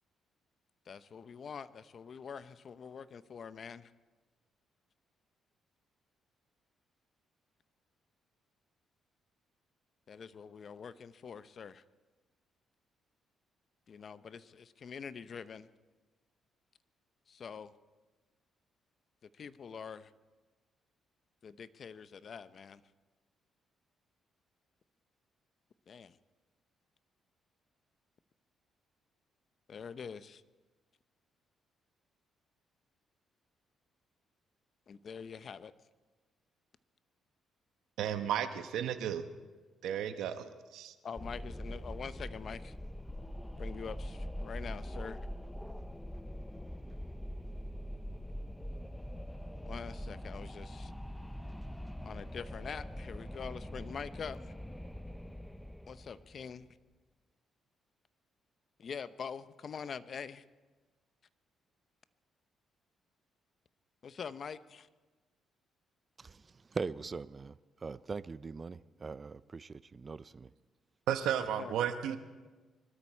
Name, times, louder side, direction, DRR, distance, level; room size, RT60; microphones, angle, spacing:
voice 1, 0.9-3.9 10.1-11.8 13.9-15.7 17.3-17.7 19.4-20.1 21.4-22.8 25.9-26.2 29.7-30.4 34.9-35.7 41.0-42.7 43.6-45.2 49.6-50.9 52.0-54.4 55.9-56.7 58.8-60.4 64.0-64.9 71.6-71.7, left 6 dB, 50° left, 0.7 m, -45 dB
voice 2, 38.0-39.2 39.8-40.9 71.1-72.2, right 9 dB, 85° right, 1.0 m, -33 dB
Wind, 41.2-56.5, equal, 5° left, 0.7 m, -43 dB
voice 3, 66.2-70.5, right 4 dB, 35° right, 0.5 m, -41 dB
24.0 x 13.0 x 4.4 m
cardioid pair, 90°, 0 cm